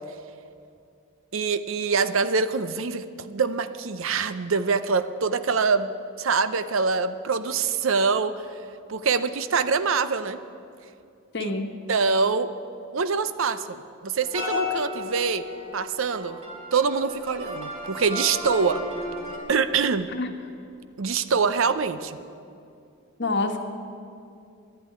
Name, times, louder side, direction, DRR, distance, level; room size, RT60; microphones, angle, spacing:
voice 1, 1.3-5.9 6.2-8.3 8.9-10.4 11.4-11.5 11.9-12.5 12.9-15.4 15.7-16.4 16.7-18.8 19.5-20.1 21.0-22.2, right 5 dB, 65° right, 13 dB, 0.6 m, -24 dB
voice 2, 11.3-11.7 20.1-20.3 23.2-23.6, left 3 dB, 50° left, 5 dB, 1.2 m, -27 dB
sound 1, 14.2-19.4, left 2 dB, 30° right, 2.3 m, -33 dB
11.5 x 11.0 x 9.7 m, 2.5 s
head